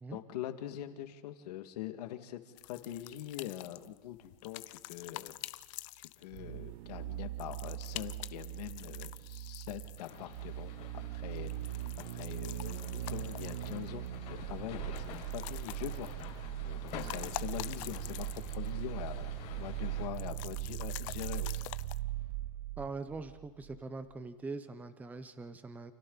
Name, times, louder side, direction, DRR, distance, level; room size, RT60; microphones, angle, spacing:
voice 1, 0.1-5.4 6.0-11.5 12.1-16.1 16.5-19.3 19.6-21.6, left 13 dB, 75° left, 7 dB, 2.1 m, -43 dB
sound 1, 2.6-6.6 7.4-10.4 11.3-14.1 15.0-16.4 16.7-18.8 19.1-19.2 20.1-22.0, left 19 dB, 50° left, 0.6 m, -47 dB
sound 2, 6.3-23.8 24.1-24.2, right 15 dB, 65° right, 0.7 m, -40 dB
sound 3, 10.0-20.1, left 7 dB, 35° left, 5.8 m, -49 dB
voice 2, 22.8-25.9, right 3 dB, 10° right, 10 dB, 0.8 m, -42 dB
29.0 x 28.5 x 4.0 m, 1.3 s
supercardioid pair, 160°, 21 cm